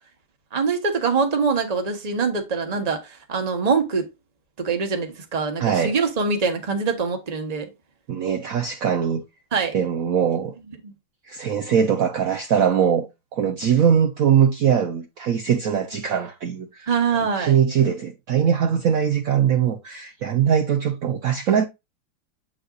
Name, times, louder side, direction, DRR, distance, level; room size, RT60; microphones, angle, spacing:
voice 1, 0.5-4.1 4.6-7.7 9.5-9.7 10.8-10.9 16.9-17.6, right 5 dB, 25° right, 0.8 m, -24 dB
voice 2, 5.6-5.9 8.1-9.2 9.7-10.6 11.3-16.9 17.4-21.7, right 8 dB, 70° right, 0.7 m, -21 dB
7.9 x 5.6 x 2.4 m
omnidirectional pair, 2.3 m